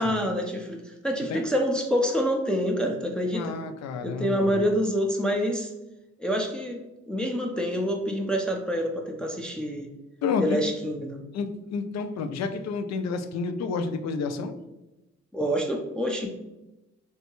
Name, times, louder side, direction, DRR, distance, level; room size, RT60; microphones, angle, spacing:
voice 1, 0.0-3.6 4.0-5.7 6.2-6.8 7.1-9.9 10.4-11.2 15.3-16.3, equal, 5° left, 2 dB, 0.5 m, -27 dB
voice 2, 3.3-4.6 10.2-10.6 11.3-14.5, left 4 dB, 60° left, 8 dB, 0.5 m, -30 dB
3.5 x 2.1 x 2.9 m, 0.98 s
supercardioid pair, 65°, 30 cm